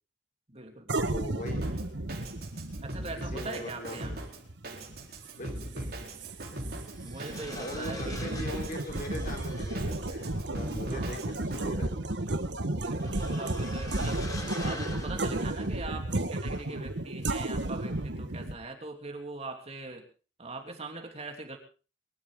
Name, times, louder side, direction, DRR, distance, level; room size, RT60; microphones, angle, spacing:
voice 1, 0.5-1.0 2.8-4.1 7.0-8.4 10.9-11.3 12.8-14.2 14.6-20.0 20.4-21.6, right 3 dB, 35° right, 4 dB, 3.2 m, -41 dB
sound 1, 0.9-18.6, right 2 dB, 85° right, 1.5 m, -33 dB
voice 2, 1.1-1.7 3.2-4.2 5.3-6.0 7.5-11.9, left 1 dB, 50° left, 3 dB, 3.9 m, -41 dB
Drum kit, 1.5-11.7, right 1 dB, 60° right, 4.2 m, -40 dB
sound 2, 5.2-5.3 6.5-16.2 16.5-16.8, left 2 dB, 20° left, 3.7 m, -46 dB
24.5 x 12.5 x 3.8 m, 0.35 s
head